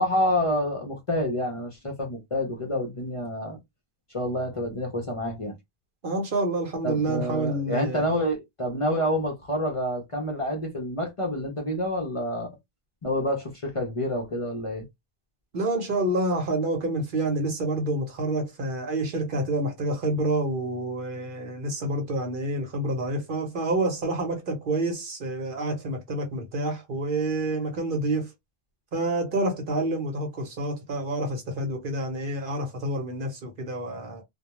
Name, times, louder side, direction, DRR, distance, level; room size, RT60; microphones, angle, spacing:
voice 1, 0.0-3.6 4.1-5.5 6.8-12.5 13.0-14.8, left 1 dB, 40° left, 0.6 m, -28 dB
voice 2, 6.0-8.2 15.5-28.3 28.9-34.2, right 2 dB, 60° right, 0.9 m, -28 dB
2.2 x 2.2 x 2.9 m
omnidirectional pair, 1.0 m